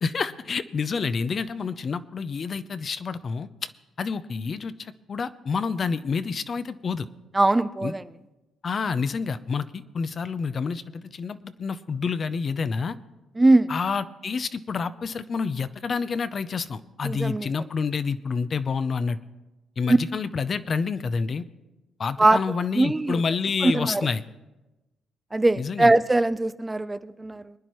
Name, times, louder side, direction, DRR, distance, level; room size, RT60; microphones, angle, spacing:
voice 1, 0.0-3.7 4.0-7.1 7.8-7.9 8.6-13.0 13.7-19.2 19.8-21.4 22.0-24.2 25.6-25.9, left 5 dB, 45° left, 13 dB, 0.6 m, -28 dB
voice 2, 7.3-8.0 13.4-13.7 17.0-17.5 19.9-20.0 22.2-22.4 22.8-23.2 23.6-24.1 25.3-27.5, right 2 dB, 15° right, 14 dB, 0.4 m, -21 dB
23.0 x 9.9 x 3.1 m, 1.1 s
cardioid pair, 90°, 0 cm